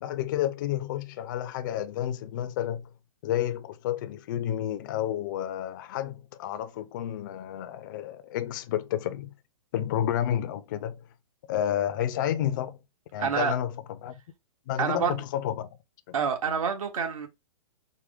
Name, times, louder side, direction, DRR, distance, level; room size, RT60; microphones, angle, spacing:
voice 1, 0.0-2.8 3.2-9.3 9.7-11.0 11.5-12.8 13.1-14.1 14.7-15.7 16.1-16.2, left 11 dB, 35° left, 0.5 m, -30 dB
voice 2, 13.2-13.5 14.8-15.2 16.1-17.3, right 6 dB, 70° right, 1.7 m, -27 dB
4.7 x 2.2 x 3.5 m
hypercardioid pair, 155°, 18 cm